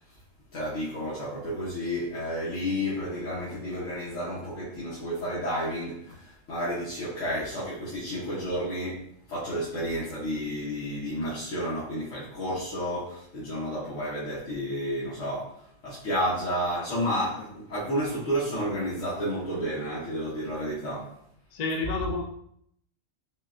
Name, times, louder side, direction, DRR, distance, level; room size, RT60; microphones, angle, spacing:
voice 1, 0.5-15.5 15.8-21.1, equal, 85° left, -8 dB, 1.3 m, -31 dB
voice 2, 17.1-17.5 21.5-22.2, left 2 dB, 60° left, 0 dB, 0.4 m, -31 dB
6.0 x 2.2 x 2.5 m, 0.71 s
omnidirectional pair, 1.3 m